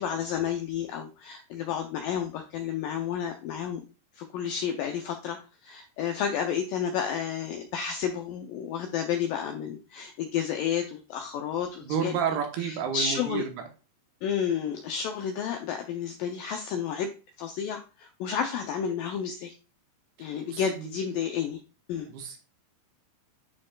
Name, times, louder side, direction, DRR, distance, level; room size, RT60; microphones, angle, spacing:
voice 1, 0.0-3.8 4.1-12.1 12.6-13.4 14.2-17.1 17.4-19.5 20.2-21.6 21.9-22.1, left 8 dB, 90° left, 5 dB, 1.9 m, -31 dB
voice 2, 11.8-13.6 20.2-20.9 22.1-22.4, right 7 dB, 80° right, 4 dB, 3.0 m, -31 dB
11.5 x 4.4 x 2.4 m, 0.32 s
omnidirectional pair, 4.7 m